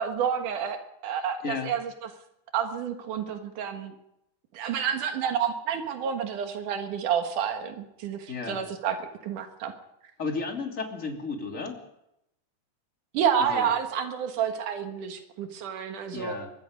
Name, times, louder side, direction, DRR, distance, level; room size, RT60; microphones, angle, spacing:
voice 1, 0.0-1.9 2.5-3.9 4.5-9.0 9.2-9.7 13.1-16.4, right 8 dB, 90° right, 5 dB, 3.1 m, -29 dB
voice 2, 8.3-8.6 10.2-11.8 13.4-13.7 16.1-16.5, left 4 dB, 25° left, 2 dB, 3.0 m, -33 dB
23.5 x 22.0 x 5.2 m, 0.83 s
omnidirectional pair, 3.5 m